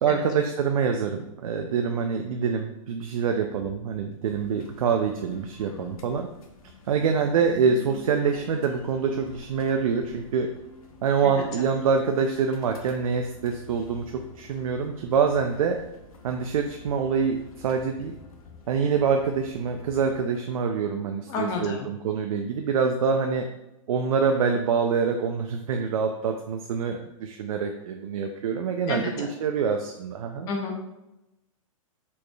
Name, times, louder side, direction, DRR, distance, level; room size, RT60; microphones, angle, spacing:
voice 1, 0.0-6.3 6.9-10.5 11.0-15.8 16.2-18.2 18.7-23.5 23.9-30.5, right 6 dB, 80° right, 4 dB, 0.4 m, -25 dB
sound 1, 4.2-20.2, left 3 dB, 80° left, 0.7 m, -48 dB
voice 2, 11.2-11.6 21.3-21.9 28.9-29.3 30.5-30.8, left 3 dB, 20° left, 2 dB, 0.5 m, -31 dB
4.2 x 3.2 x 2.3 m, 0.91 s
hypercardioid pair, 155°, 18 cm